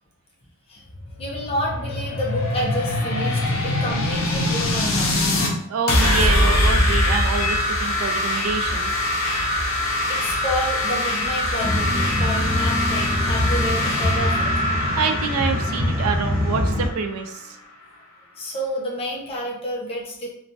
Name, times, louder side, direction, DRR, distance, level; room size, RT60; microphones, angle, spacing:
sound 1, 0.9-5.5 5.9-17.4, left 1 dB, 70° left, 0.6 m, -23 dB
voice 1, 1.2-5.3 10.1-14.5 18.4-20.3, equal, 25° left, -3 dB, 0.5 m, -29 dB
voice 2, 5.7-9.1 14.8-17.6, right 5 dB, 85° right, 6 dB, 0.4 m, -27 dB
sound 2, 11.6-16.9, left 1 dB, 45° right, 0.8 m, -24 dB
3.0 x 2.1 x 2.6 m, 0.72 s
head